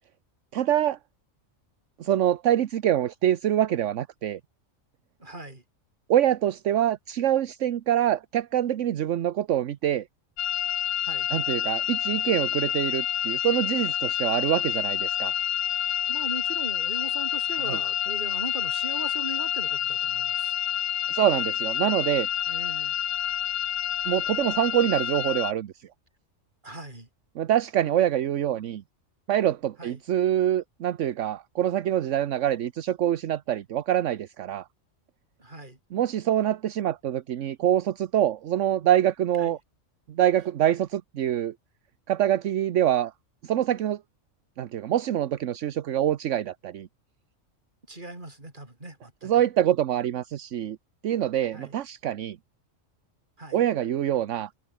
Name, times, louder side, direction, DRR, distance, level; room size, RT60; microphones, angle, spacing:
voice 1, 0.5-1.0 2.0-4.4 6.1-10.1 11.3-15.3 17.7-17.8 21.1-22.3 24.1-25.9 27.4-28.8 29.3-34.6 35.9-39.6 40.1-41.5 42.1-43.1 43.4-44.0 44.6-46.9 49.2-50.8 51.0-52.4 53.5-54.5, right 11 dB, 70° right, 1.1 m, -25 dB
voice 2, 5.2-5.6 11.1-11.3 16.1-20.5 22.5-22.9 26.6-27.1 29.8-30.0 35.4-35.8 39.4-39.6 47.9-49.4 51.5-51.8 53.4-53.6, right 2 dB, 40° right, 4.7 m, -39 dB
sound 1, 10.4-25.5, left 10 dB, 75° left, 1.1 m, -28 dB
omnidirectional pair, 1.3 m